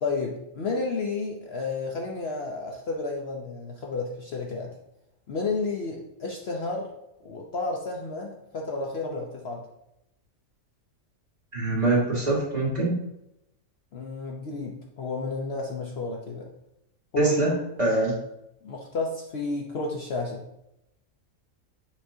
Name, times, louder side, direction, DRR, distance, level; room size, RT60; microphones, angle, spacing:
voice 1, 0.0-4.7 5.3-6.9 7.2-9.6 13.9-16.5 17.1-17.5 18.6-20.4, left 3 dB, 55° left, 0 dB, 0.9 m, -31 dB
voice 2, 11.5-13.0 17.2-17.5 17.8-18.2, right 2 dB, 30° right, -6 dB, 2.3 m, -23 dB
7.2 x 5.1 x 2.7 m, 0.84 s
omnidirectional pair, 1.4 m